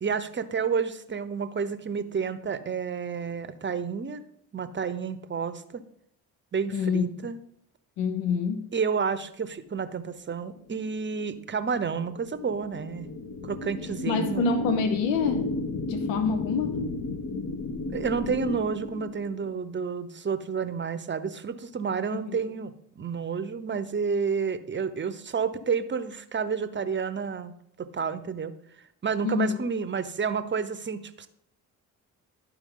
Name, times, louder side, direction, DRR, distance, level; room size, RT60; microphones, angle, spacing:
voice 1, 0.0-4.2 4.5-5.8 6.5-7.4 8.7-13.1 13.4-14.5 17.9-28.5 29.0-31.3, right 6 dB, 25° right, 13 dB, 0.8 m, -30 dB
voice 2, 6.7-7.0 8.0-8.7 14.1-15.5 15.9-16.8 22.1-22.4 29.2-29.6, left 5 dB, 70° left, 8 dB, 0.9 m, -26 dB
weird ambient, 10.8-19.6, left 2 dB, 45° left, 1.1 m, -34 dB
11.5 x 4.6 x 3.8 m, 0.73 s
hypercardioid pair, 45°, 45 cm